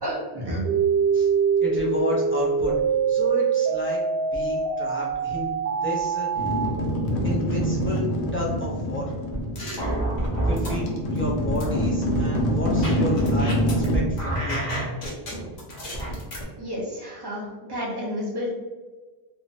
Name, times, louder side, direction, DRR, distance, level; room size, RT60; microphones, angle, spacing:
voice 1, 0.0-0.6 16.6-18.5, equal, 25° right, -5 dB, 0.7 m, -31 dB
sound 1, 0.7-6.7, right 6 dB, 75° right, 1.2 m, -24 dB
voice 2, 1.6-2.7 3.1-4.0 4.3-5.5 5.8-6.5 7.2-8.1 8.3-9.1 10.4-14.6, left 1 dB, 15° left, -6 dB, 0.4 m, -31 dB
sound 2, 6.4-14.0, equal, 85° left, 0.9 m, -25 dB
sound 3, 9.3-10.8 11.2-13.9 14.2-16.4, right 1 dB, 50° left, 0.8 m, -29 dB
3.1 x 2.1 x 2.6 m, 1.3 s
omnidirectional pair, 1.1 m